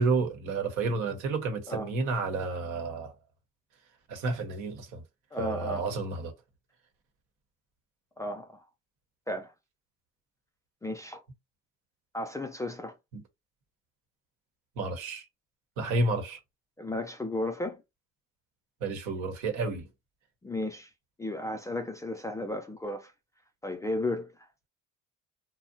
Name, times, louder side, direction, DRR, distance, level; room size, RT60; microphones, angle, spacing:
voice 1, 0.0-3.1 4.1-5.0 5.4-6.3 13.1-13.2 14.8-15.3 15.8-16.4 18.8-19.9, right 3 dB, 70° right, 1.0 m, -30 dB
voice 2, 5.3-5.8 8.2-8.6 9.3-9.5 10.8-11.2 12.1-12.9 16.8-17.8 20.4-20.9 21.2-23.1 23.6-24.3, left 1 dB, 10° left, 0.3 m, -34 dB
2.7 x 2.0 x 2.6 m
supercardioid pair, 95°, 31 cm